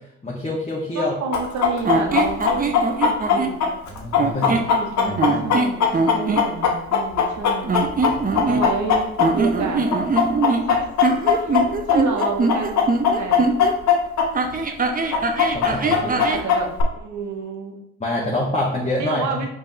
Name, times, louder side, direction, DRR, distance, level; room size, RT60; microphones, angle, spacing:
voice 1, 0.2-1.1 3.9-4.8 5.0-5.5 8.1-8.2 15.4-16.3 18.0-19.5, left 1 dB, 20° left, -4 dB, 1.2 m, -26 dB
voice 2, 0.9-3.7 4.4-7.9 8.4-9.8 10.6-10.9 11.3-11.6 11.9-12.8 13.2-13.6 15.9-17.8 19.0-19.5, right 5 dB, 60° right, 3 dB, 1.1 m, -30 dB
Chicken rooster, 1.3-9.6 9.9-14.3 14.5-14.6 15.1-16.8, left 7 dB, 55° left, 0.8 m, -19 dB
sound 1, 1.8-3.6 4.2-4.7 5.2-6.5 7.6-8.9 9.2-13.7 14.3-16.5, right 3 dB, 25° right, 0.6 m, -22 dB
5.2 x 3.5 x 2.7 m, 0.80 s
hypercardioid pair, 50°, 33 cm